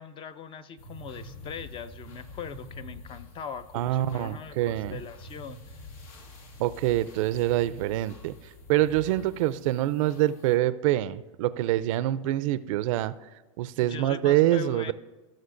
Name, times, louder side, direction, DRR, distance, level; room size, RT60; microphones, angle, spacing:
voice 1, 0.0-5.8 13.8-14.9, left 7 dB, 30° left, 14 dB, 0.4 m, -41 dB
sound 1, 0.8-10.6, left 1 dB, 75° left, 1.4 m, -47 dB
voice 2, 3.7-5.0 6.6-8.3 8.7-13.1 13.6-14.9, right 14 dB, 65° right, 16 dB, 0.4 m, -25 dB
17.5 x 6.3 x 2.5 m, 1.2 s
supercardioid pair, 120°, 18 cm